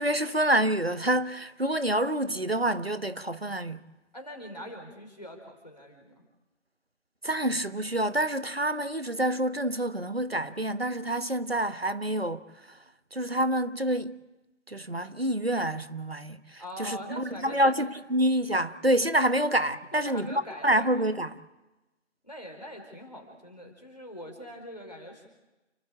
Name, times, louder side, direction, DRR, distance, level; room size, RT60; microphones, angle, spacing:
voice 1, 0.0-3.8 7.2-12.8 13.1-14.2 14.7-21.3, right 1 dB, 55° right, 1.2 m, -27 dB
voice 2, 4.1-6.2 16.6-17.8 19.9-21.1 22.2-25.3, left 1 dB, 35° left, 4.6 m, -43 dB
29.5 x 12.5 x 8.6 m
figure-of-eight pair, 180°, 36 cm